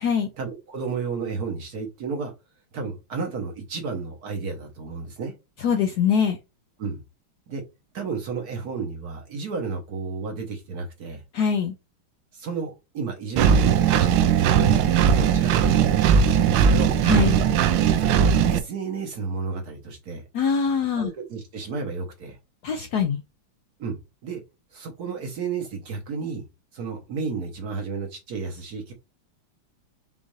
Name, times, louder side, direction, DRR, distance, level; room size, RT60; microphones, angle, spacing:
voice 1, 0.4-2.3 2.7-5.3 6.8-7.0 7.5-7.6 7.9-11.2 12.3-14.7 15.1-17.0 18.0-20.2 21.0-22.4 23.8-24.4 24.7-26.4 26.7-28.9, right 5 dB, 55° right, 1.3 m, -32 dB
voice 2, 5.6-6.4 11.3-11.7 17.0-17.4 20.3-21.1 22.6-23.2, left 6 dB, 75° left, 0.9 m, -23 dB
Engine, 13.4-18.6, right 7 dB, 85° right, 1.4 m, -19 dB
5.4 x 2.4 x 3.1 m
omnidirectional pair, 2.2 m